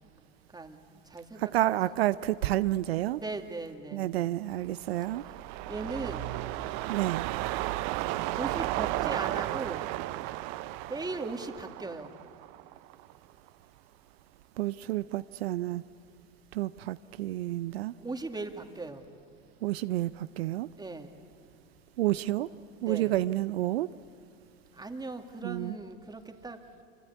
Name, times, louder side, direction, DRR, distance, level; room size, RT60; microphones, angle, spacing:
voice 1, 0.5-1.4 1.8-2.0 3.1-4.1 5.7-6.3 8.3-9.9 10.9-12.2 18.0-19.1 20.8-21.2 22.8-23.1 24.7-26.6, right 3 dB, 15° right, 5 dB, 2.4 m, -38 dB
voice 2, 1.4-3.2 3.9-5.3 6.9-7.2 14.6-15.8 16.5-17.9 19.6-20.7 22.0-22.5 22.8-23.9 25.4-25.8, right 15 dB, 80° right, 15 dB, 0.6 m, -29 dB
sound 1, 4.7-13.1 13.5-13.6, right 16 dB, 60° right, 0.9 m, -34 dB
26.5 x 24.5 x 8.2 m, 2.4 s
hypercardioid pair, 80°, 31 cm